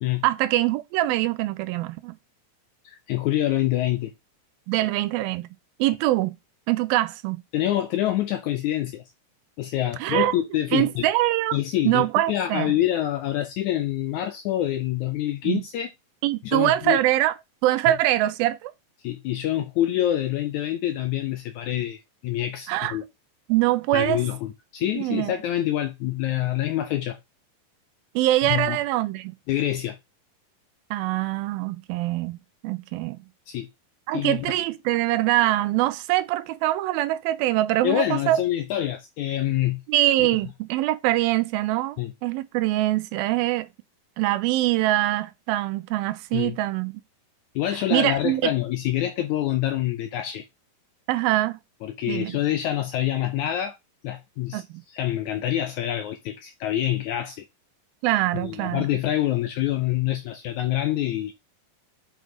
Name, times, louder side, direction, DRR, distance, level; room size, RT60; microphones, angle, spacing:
voice 1, 0.2-2.2 4.7-5.5 5.8-6.4 6.7-7.4 10.0-10.3 10.7-11.6 11.9-12.7 15.5-15.6 16.2-17.4 17.6-18.7 22.7-23.0 23.5-24.2 25.0-25.3 28.2-29.3 30.9-32.4 32.6-33.2 34.1-38.4 39.9-43.7 44.2-46.9 47.9-48.5 51.1-51.6 52.1-52.4 54.5-54.8 58.0-58.9, right 16 dB, 85° right, 2.5 m, -23 dB
voice 2, 2.9-4.1 7.5-9.0 9.6-11.1 11.5-15.9 16.4-17.0 17.9-18.0 19.0-22.0 22.2-23.0 23.9-27.2 28.5-28.8 29.5-30.0 33.5-33.7 34.1-34.5 37.8-39.8 42.0-42.1 46.3-46.6 47.6-50.4 51.8-53.8 54.0-54.6 54.9-57.5 58.3-61.3, left 13 dB, 80° left, 1.8 m, -26 dB
7.7 x 5.2 x 3.9 m
omnidirectional pair, 4.1 m